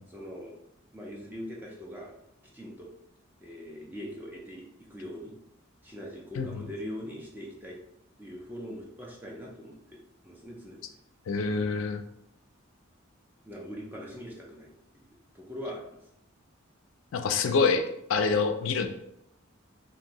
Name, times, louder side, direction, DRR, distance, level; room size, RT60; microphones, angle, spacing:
voice 1, 0.1-0.5 0.9-2.1 2.5-2.9 3.4-5.3 5.8-7.8 8.2-10.0 10.2-11.0 13.4-14.8 15.3-16.0, equal, 10° right, -3 dB, 0.4 m, -41 dB
voice 2, 11.3-12.0 17.1-17.8 18.1-18.9, left 4 dB, 65° left, 7 dB, 0.3 m, -26 dB
2.6 x 2.6 x 2.9 m, 0.79 s
head